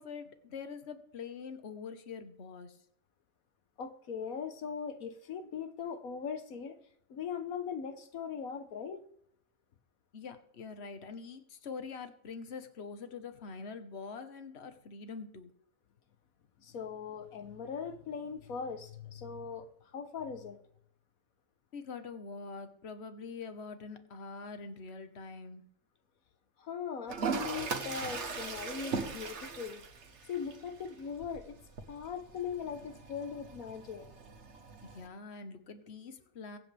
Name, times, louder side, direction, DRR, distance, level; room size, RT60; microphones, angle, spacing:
voice 1, 0.0-2.8 10.1-15.5 21.7-25.6 34.8-36.6, left 5 dB, 50° left, 8 dB, 1.5 m, -44 dB
voice 2, 3.8-6.8 7.1-9.0 16.6-20.6 26.6-29.8 30.3-31.6 31.9-34.1, left 6 dB, 85° left, 9 dB, 1.5 m, -40 dB
Toilet flush, 27.1-35.1, right 5 dB, 55° right, 1.5 m, -40 dB
23.0 x 8.5 x 3.4 m, 0.70 s
omnidirectional pair, 1.4 m